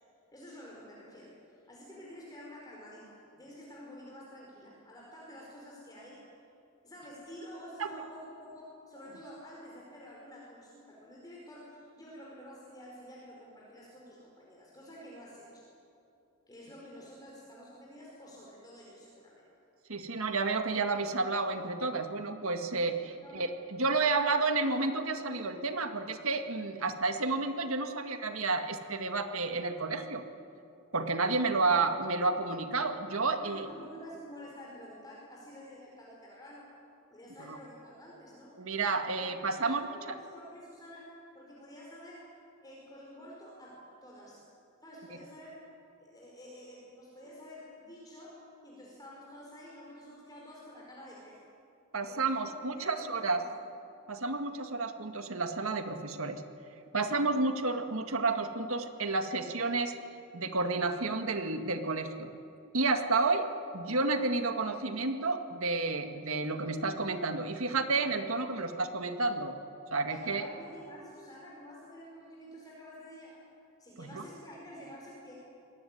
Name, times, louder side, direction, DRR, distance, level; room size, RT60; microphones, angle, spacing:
voice 1, 0.3-6.2 6.8-15.7 16.5-19.5 23.2-23.5 33.4-36.7 37.1-38.6 39.0-39.3 39.6-42.3 42.6-44.4 44.8-45.6 46.0-51.4 52.1-53.5 69.9-73.4 73.8-75.3, equal, 20° left, -4 dB, 4.5 m, -49 dB
voice 2, 19.9-30.2 30.9-33.7 37.4-37.6 38.6-39.8 51.9-53.4 54.1-56.4 56.9-60.0 60.3-62.3 62.7-63.5 63.7-69.5 69.9-70.5 74.0-74.2, right 3 dB, 70° right, 6 dB, 2.0 m, -31 dB
25.0 x 19.5 x 9.6 m, 2.6 s
head